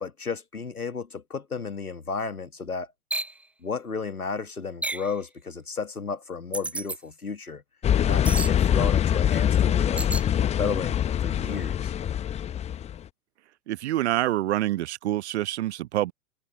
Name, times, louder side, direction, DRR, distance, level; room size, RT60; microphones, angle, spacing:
voice 1, 0.0-2.9 3.6-7.6 8.0-10.0 10.6-11.9, left 5 dB, 85° left, 1.6 m, -33 dB
sound 1, 3.1-3.4 4.8-5.1 6.5-7.0 8.2-8.6 10.0-10.3, right 2 dB, 5° right, 0.6 m, -31 dB
sound 2, 7.8-13.0, left 10 dB, 15° left, 1.0 m, -24 dB
voice 2, 13.7-16.1, right 14 dB, 50° right, 1.0 m, -26 dB
figure-of-eight pair, 105°, 43 cm